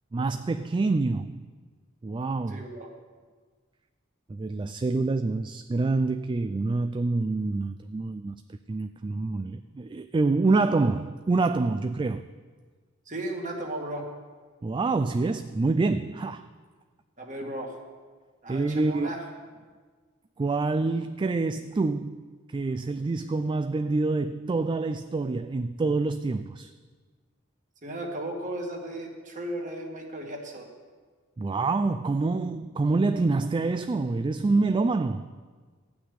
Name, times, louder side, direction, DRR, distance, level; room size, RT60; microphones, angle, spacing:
voice 1, 0.1-1.4 2.0-2.6 4.3-8.4 8.7-12.3 14.6-16.4 18.5-19.1 20.4-26.7 31.4-35.3, right 3 dB, 25° right, 0.3 m, -26 dB
voice 2, 2.5-2.9 13.1-14.1 17.2-17.7 18.4-19.2 27.8-30.7, right 1 dB, 40° right, 2.1 m, -35 dB
14.5 x 6.1 x 9.6 m
head